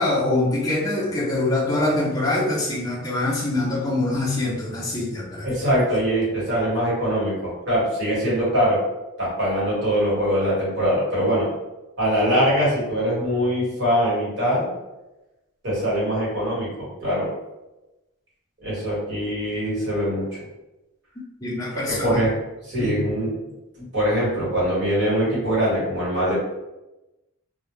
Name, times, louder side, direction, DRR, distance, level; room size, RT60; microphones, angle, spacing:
voice 1, 0.0-5.5 21.4-22.2 22.8-23.0, left 2 dB, 15° left, -6 dB, 0.4 m, -24 dB
voice 2, 5.4-8.8 9.2-11.5 12.0-14.7 15.6-17.3 18.6-20.2 21.9-22.3 22.7-23.4 23.8-26.3, equal, 55° right, -8 dB, 1.2 m, -22 dB
2.1 x 2.0 x 3.0 m, 1.0 s
head